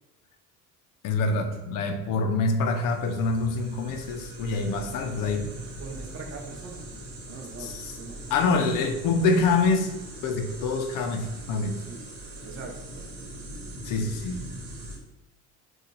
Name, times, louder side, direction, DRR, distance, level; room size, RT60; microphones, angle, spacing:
voice 1, 1.0-5.5 7.6-7.9 8.3-9.9 10.2-11.8 13.8-14.6, left 3 dB, 65° left, 6 dB, 0.6 m, -26 dB
sound 1, 2.6-15.0, right 1 dB, 75° right, 1.0 m, -41 dB
voice 2, 5.8-8.2 11.8-12.0 12.4-13.1, right 4 dB, 35° right, 1 dB, 0.8 m, -42 dB
2.8 x 2.4 x 3.9 m, 1.0 s
cardioid pair, 100°, 35 cm